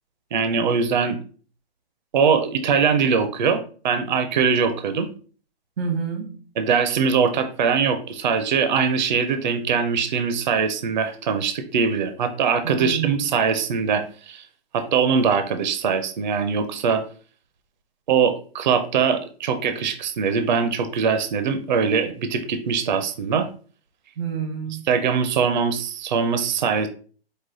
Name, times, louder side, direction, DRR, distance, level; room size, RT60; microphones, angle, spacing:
voice 1, 0.3-1.2 2.1-5.1 6.6-14.4 14.7-17.0 18.1-23.5 24.9-26.9, right 6 dB, 50° right, 0.5 m, -22 dB
voice 2, 5.8-6.5 12.6-13.3 24.2-24.8, right 6 dB, 90° right, 0.9 m, -28 dB
4.9 x 2.1 x 3.7 m
hypercardioid pair, 175°, 31 cm